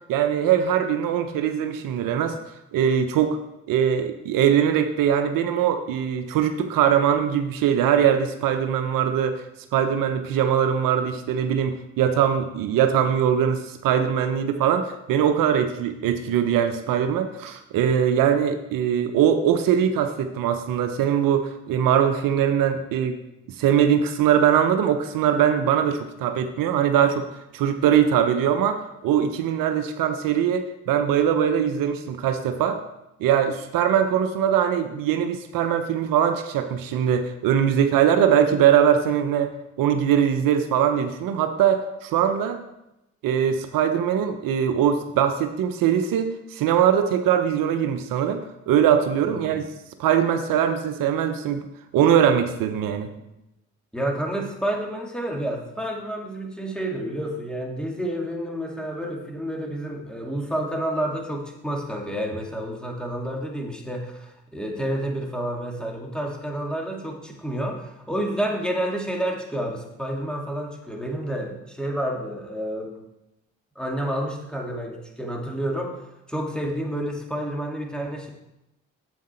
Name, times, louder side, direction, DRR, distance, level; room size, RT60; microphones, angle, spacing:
voice 1, 0.1-2.4 2.7-3.4 3.7-9.4 9.7-23.2 23.6-27.2 27.5-32.8 33.2-39.5 39.8-42.6 43.2-49.6 50.0-51.7 51.9-53.1, right 9 dB, 75° right, 7 dB, 0.8 m, -21 dB
voice 2, 49.2-49.6 53.9-73.0 73.8-78.3, right 1 dB, ahead, 1 dB, 2.2 m, -29 dB
7.9 x 7.3 x 4.3 m, 0.91 s
hypercardioid pair, 50°, 34 cm